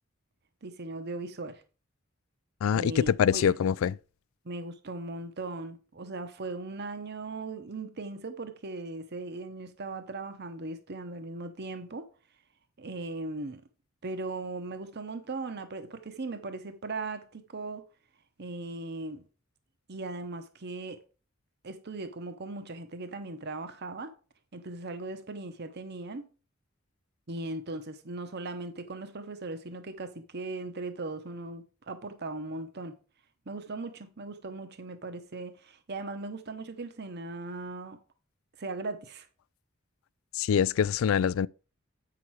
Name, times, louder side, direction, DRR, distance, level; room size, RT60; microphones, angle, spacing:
voice 1, 0.6-1.6 2.7-3.5 4.4-12.1 12.8-13.6 14.0-17.8 18.4-19.2 19.9-21.0 21.6-24.1 24.5-26.3 27.3-32.9 33.5-38.0 38.6-39.3, right 2 dB, 55° right, 0.9 m, -38 dB
voice 2, 2.6-3.9 40.3-41.5, left 8 dB, 75° left, 0.3 m, -24 dB
8.3 x 5.9 x 4.7 m
head